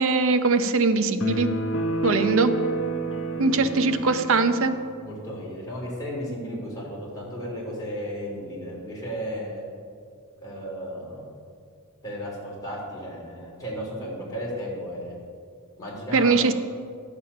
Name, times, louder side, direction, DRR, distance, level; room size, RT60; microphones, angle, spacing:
voice 1, 0.0-1.5 2.0-2.5 3.4-4.8 16.1-16.5, right 3 dB, 65° right, 9 dB, 0.6 m, -21 dB
sound 1, 1.2-4.7, right 2 dB, 60° left, 0.8 m, -28 dB
voice 2, 3.2-3.8 5.0-9.6 10.4-11.2 12.0-15.1 15.8-16.4, equal, 15° left, -5 dB, 3.0 m, -34 dB
11.0 x 7.0 x 5.6 m, 2.2 s
head